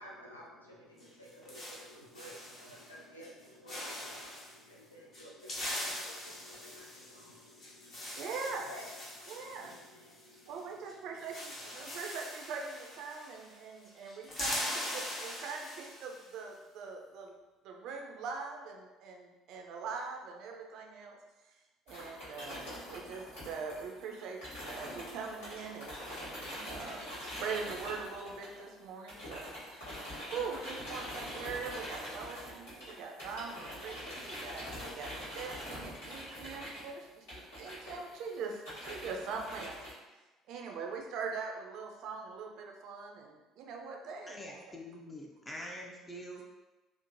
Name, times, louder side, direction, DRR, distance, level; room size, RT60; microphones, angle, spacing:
voice 1, 0.0-12.0, left 1 dB, 90° left, -4 dB, 0.4 m, -53 dB
sound 1, 1.0-2.9 3.2-3.4 3.7-4.5 5.1-10.6 10.9-11.0 11.2-13.6 13.8-16.3, left 1 dB, 40° left, 0.8 m, -42 dB
voice 2, 8.2-8.6 9.3-9.8 10.5-17.3 17.6-21.2 21.9-24.4 24.7-30.0 30.3-39.7 40.5-44.6, right 5 dB, 55° right, 2 dB, 0.4 m, -42 dB
sound 2, 21.9-28.8 29.1-39.9, equal, 70° left, 1.2 m, -44 dB
voice 3, 44.2-46.4, equal, 20° left, -1 dB, 0.4 m, -45 dB
3.0 x 2.0 x 2.6 m, 1.1 s
figure-of-eight pair, 55°, 0 cm